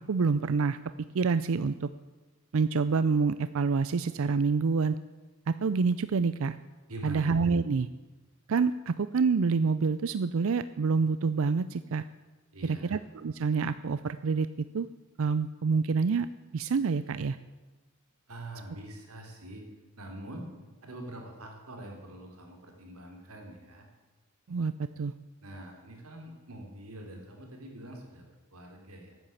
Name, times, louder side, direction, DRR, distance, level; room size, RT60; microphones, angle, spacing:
voice 1, 0.1-0.8 1.1-1.9 2.5-4.9 5.5-6.6 7.0-7.9 8.5-12.0 12.6-14.5 14.7-14.9 15.2-16.3 16.5-17.4 24.5-25.1, right 5 dB, 70° right, 13 dB, 0.4 m, -27 dB
voice 2, 6.9-7.3 12.5-13.0 18.3-19.6 20.0-20.4 20.8-23.9 25.4-29.2, right 1 dB, 85° right, 2 dB, 3.3 m, -44 dB
12.5 x 9.2 x 9.0 m, 1.2 s
head